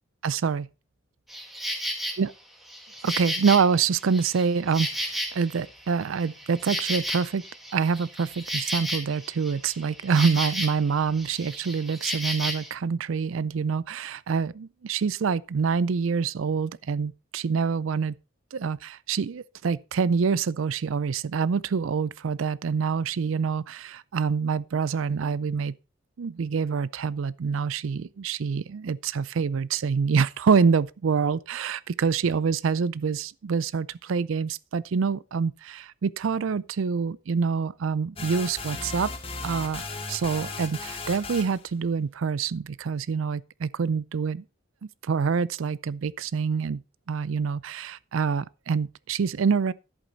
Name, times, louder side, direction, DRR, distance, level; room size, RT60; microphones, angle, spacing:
voice 1, 0.2-0.7 2.2-2.3 3.0-7.4 7.7-18.2 18.5-25.7 26.2-39.1 39.4-39.8 40.1-44.4 45.0-46.8 47.1-49.7, right 5 dB, 85° right, 0.4 m, -26 dB
Insect, 1.3-2.2 2.7-5.7 6.0-10.9 11.2-12.7, equal, ahead, 1.7 m, -33 dB
sound 1, 38.2-41.7, left 3 dB, 25° left, 1.4 m, -36 dB
11.0 x 8.4 x 3.9 m
head